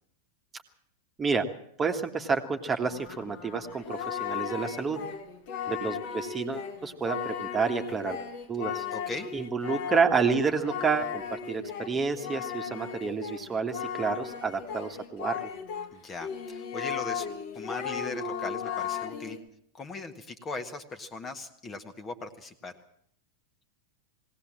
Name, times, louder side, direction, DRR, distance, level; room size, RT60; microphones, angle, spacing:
voice 1, 1.8-5.0 5.7-8.2 8.5-8.8 9.3-15.4, right 5 dB, 20° right, 5 dB, 1.6 m, -29 dB
Singing, 2.8-15.9 16.2-19.4, left 7 dB, 50° left, 1.8 m, -36 dB
voice 2, 8.9-9.3 15.9-17.3 17.5-19.4 19.7-22.7, left 3 dB, 20° left, 7 dB, 1.6 m, -38 dB
20.0 x 17.5 x 7.5 m, 0.67 s
figure-of-eight pair, 90°, 0 cm